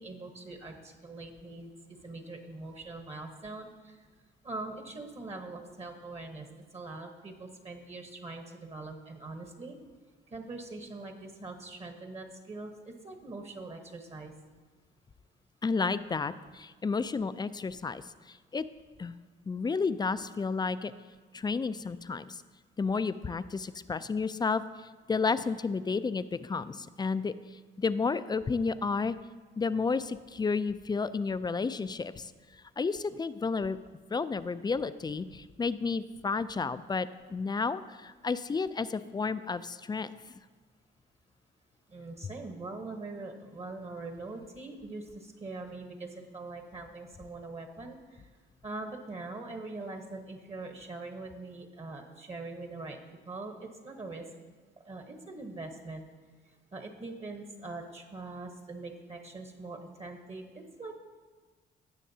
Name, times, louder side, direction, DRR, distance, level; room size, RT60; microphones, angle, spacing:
voice 1, 0.0-3.9 4.4-6.5 6.7-9.8 10.3-14.3 41.9-48.2 48.6-53.0 53.3-54.2 54.8-56.0 56.7-61.0, right 3 dB, 30° right, 4 dB, 1.1 m, -42 dB
voice 2, 15.6-18.6 19.0-19.2 19.5-20.9 21.3-22.4 22.8-27.3 27.8-29.2 29.6-32.3 32.8-33.8 34.1-40.1, left 4 dB, 20° left, 14 dB, 0.3 m, -31 dB
17.5 x 6.5 x 2.8 m, 1.4 s
cardioid pair, 90°, 20 cm